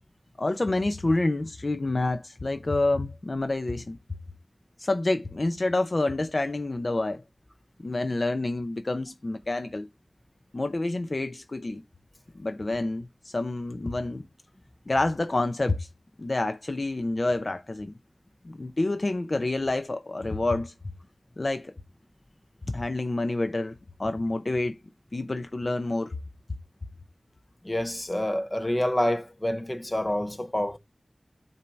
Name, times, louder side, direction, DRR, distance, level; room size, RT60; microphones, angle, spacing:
voice 1, 0.4-4.0 4.8-7.2 7.8-9.9 10.5-11.8 12.3-14.3 14.9-15.9 16.2-17.9 18.4-20.7 21.4-21.7 22.7-24.8 25.1-26.1, left 2 dB, 50° left, 0.6 m, -28 dB
voice 2, 27.6-30.8, left 1 dB, 25° left, 0.9 m, -27 dB
8.3 x 2.8 x 4.5 m
wide cardioid pair, 45°, 0 cm